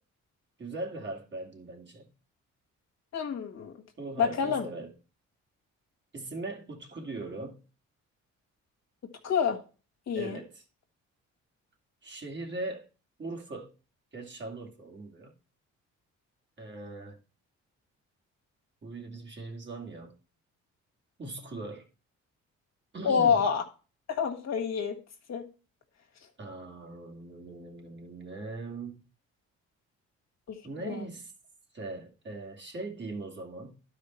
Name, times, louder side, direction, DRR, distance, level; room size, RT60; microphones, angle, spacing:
voice 1, 0.6-2.1 4.0-4.9 6.1-7.6 10.1-10.6 12.0-12.9 13.2-13.7 14.1-15.3 16.6-17.2 18.8-20.1 21.2-21.9 22.9-23.5 26.4-29.0 30.6-31.3 31.7-33.8, right 2 dB, 40° right, 2.3 m, -40 dB
voice 2, 3.1-3.7 4.2-4.6 9.2-9.6 10.1-10.4 23.0-23.6 24.1-25.0 25.3-25.4 30.5-30.6 30.8-31.0, left 6 dB, 60° left, 1.7 m, -27 dB
11.5 x 5.0 x 4.4 m
cardioid pair, 90°, 30 cm